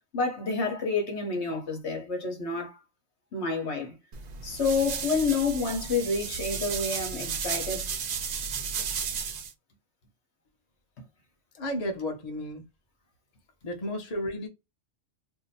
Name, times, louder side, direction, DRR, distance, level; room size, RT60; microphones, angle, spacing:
voice 1, 0.1-2.8 3.3-3.9 4.4-7.9, left 4 dB, 65° left, 1.2 m, -29 dB
sound 1, 4.1-9.5, right 6 dB, 60° right, 0.4 m, -33 dB
voice 2, 11.5-12.6 13.6-14.5, left 1 dB, 35° left, 0.9 m, -33 dB
2.8 x 2.2 x 4.0 m
omnidirectional pair, 1.3 m